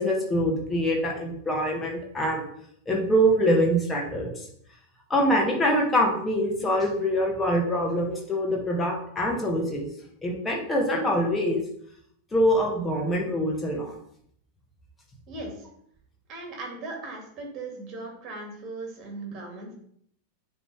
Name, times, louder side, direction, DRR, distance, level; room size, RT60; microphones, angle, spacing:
voice 1, 0.0-2.4 2.9-4.5 5.1-9.9 10.2-11.6 12.3-13.9, equal, 15° left, 0 dB, 1.7 m, -24 dB
voice 2, 15.3-15.7 16.3-19.7, right 2 dB, 30° right, 1 dB, 2.5 m, -38 dB
9.4 x 3.5 x 3.5 m, 0.67 s
figure-of-eight pair, 90°, 0 cm